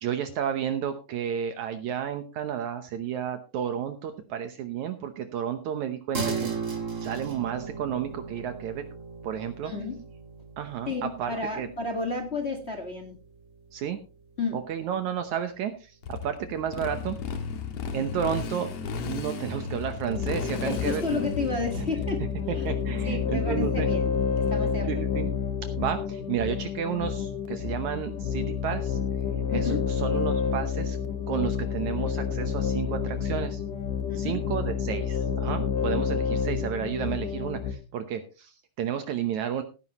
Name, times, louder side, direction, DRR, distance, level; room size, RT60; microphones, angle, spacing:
voice 1, 0.0-6.6 7.0-8.8 9.2-9.7 10.6-11.7 13.7-14.0 14.5-17.2 17.9-18.7 19.0-21.5 22.5-23.9 24.8-25.3 25.6-29.0 29.5-31.0 31.3-33.6 34.2-39.6, right 9 dB, 70° right, 8 dB, 2.2 m, -32 dB
sound 1, 6.1-15.9, right 5 dB, 25° right, 2.0 m, -38 dB
voice 2, 9.6-10.0 10.8-13.2 14.4-14.6 20.6-22.7 23.0-25.0 29.5-29.8 34.1-34.4, left 3 dB, 30° left, 5 dB, 1.2 m, -32 dB
Motorcycle, 16.0-24.7, left 5 dB, 60° left, 2.1 m, -35 dB
sound 2, 20.1-37.7, left 6 dB, 75° left, 3.1 m, -29 dB
17.0 x 10.5 x 3.0 m, 0.31 s
omnidirectional pair, 3.8 m